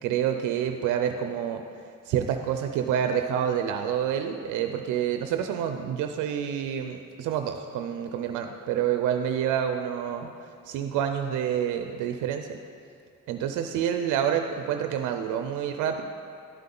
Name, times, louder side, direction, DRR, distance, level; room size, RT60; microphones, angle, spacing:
voice 1, 0.0-1.6 2.1-10.3 10.7-12.6 13.3-16.0, right 9 dB, 85° right, 6 dB, 0.5 m, -28 dB
12.0 x 5.6 x 3.8 m, 2.3 s
cardioid pair, 90°, 30 cm